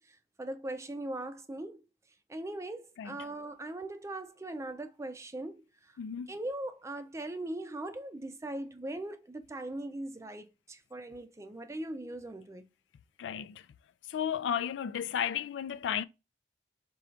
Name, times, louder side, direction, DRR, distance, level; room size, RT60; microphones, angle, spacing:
voice 1, 0.0-1.8 2.3-5.9 6.3-12.7, right 1 dB, 15° right, 0.4 m, -40 dB
voice 2, 6.0-6.3 13.2-13.7 14.1-16.0, left 8 dB, 80° left, 0.3 m, -33 dB
3.8 x 2.4 x 4.3 m
head